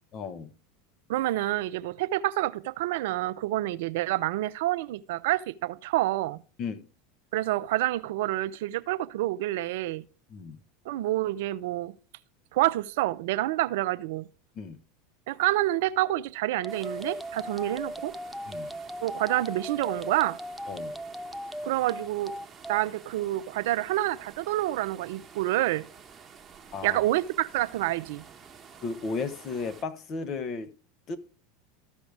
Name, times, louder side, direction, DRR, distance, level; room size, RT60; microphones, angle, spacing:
voice 1, 0.1-0.5 6.6-6.8 10.3-10.6 14.6-14.8 18.5-18.7 20.7-20.9 26.7-27.0 28.8-30.7 31.1-31.2, left 4 dB, 40° left, 1.1 m, -34 dB
voice 2, 1.1-6.4 7.3-10.0 10.9-11.9 12.5-14.3 15.3-18.1 19.0-20.4 21.6-22.4 22.7-25.8 26.8-28.2, right 16 dB, 70° right, 0.5 m, -28 dB
sound 1, 16.6-22.8, equal, ahead, 0.4 m, -38 dB
sound 2, 16.7-29.8, right 6 dB, 25° right, 1.1 m, -50 dB
13.5 x 5.2 x 3.4 m
hypercardioid pair, 100°, 0 cm